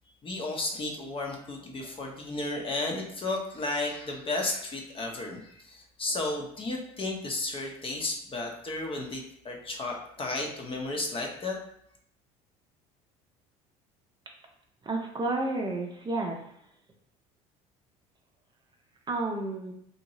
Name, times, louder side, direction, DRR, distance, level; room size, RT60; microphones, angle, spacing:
voice 1, 0.2-11.6, left 2 dB, 30° left, 0 dB, 0.7 m, -33 dB
voice 2, 14.9-16.4 19.1-19.7, right 2 dB, 25° right, 1 dB, 0.6 m, -30 dB
2.7 x 2.5 x 3.0 m, 0.71 s
supercardioid pair, 80°, 17 cm